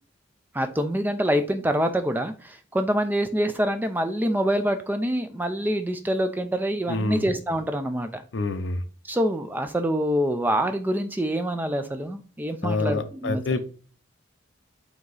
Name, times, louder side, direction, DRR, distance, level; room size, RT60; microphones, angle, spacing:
voice 1, 0.5-8.2 9.0-13.6, equal, 10° right, 0.3 m, -26 dB
voice 2, 6.9-7.3 8.3-8.8 12.6-13.6, left 3 dB, 65° left, 0.6 m, -27 dB
4.7 x 2.7 x 3.9 m
head